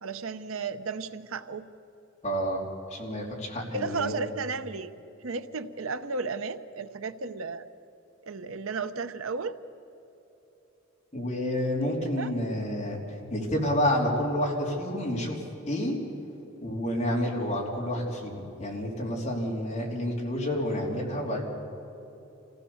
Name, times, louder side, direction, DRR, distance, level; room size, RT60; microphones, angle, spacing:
voice 1, 0.0-1.7 3.7-4.9 5.2-7.7 8.2-9.6 12.2-12.3, right 4 dB, 80° right, 11 dB, 0.8 m, -33 dB
voice 2, 2.2-4.1 11.1-13.0 13.3-15.4 15.7-16.0 16.6-21.5, equal, 30° left, -2 dB, 3.4 m, -29 dB
25.5 x 16.0 x 7.1 m, 3.0 s
head